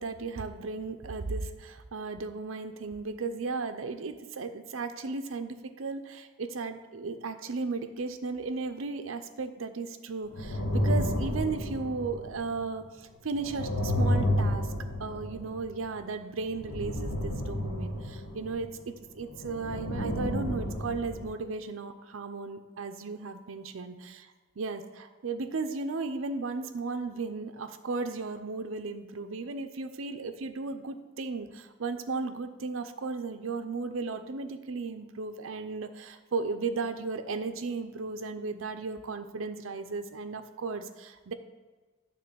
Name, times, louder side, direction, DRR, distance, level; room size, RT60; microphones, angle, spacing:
voice 1, 0.0-14.7 15.0-41.3, right 4 dB, 75° right, 8 dB, 0.6 m, -35 dB
sound 1, 10.3-12.6 13.3-15.9 16.5-18.7 19.2-21.3, equal, 90° left, 1.3 m, -31 dB
9.2 x 3.8 x 6.8 m, 1.3 s
head